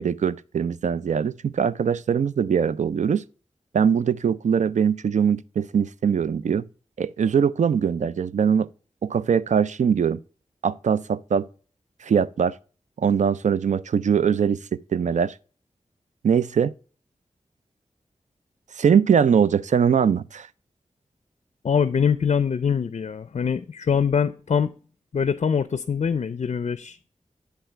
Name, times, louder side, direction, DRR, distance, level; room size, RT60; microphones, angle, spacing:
voice 1, 0.0-3.2 3.7-6.6 7.0-8.7 9.0-10.2 10.6-11.5 12.0-12.5 13.0-14.6 14.9-15.3 16.2-16.7 18.8-20.5, right 7 dB, 75° right, 0.4 m, -21 dB
voice 2, 21.6-24.7 25.1-27.0, left 6 dB, 60° left, 0.4 m, -23 dB
10.0 x 3.4 x 4.4 m
cardioid pair, 55°, 12 cm